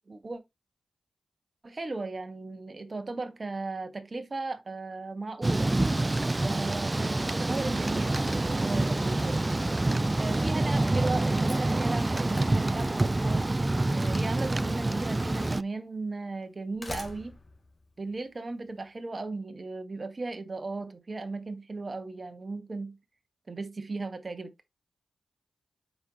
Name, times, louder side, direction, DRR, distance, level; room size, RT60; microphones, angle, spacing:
voice 1, 0.1-0.4 1.6-5.7 6.4-9.5 10.2-13.5 13.9-17.4 18.0-23.0 23.5-24.5, right 3 dB, 40° right, 1.4 m, -36 dB
Thunder / Rain, 5.4-15.6, right 2 dB, 25° right, 0.4 m, -27 dB
Slam, 9.9-10.1 10.4-13.3 14.4-14.5 15.4-15.5 16.4-18.8, left 2 dB, 35° left, 2.2 m, -46 dB
7.8 x 5.5 x 2.9 m
cardioid pair, 55°, 0 cm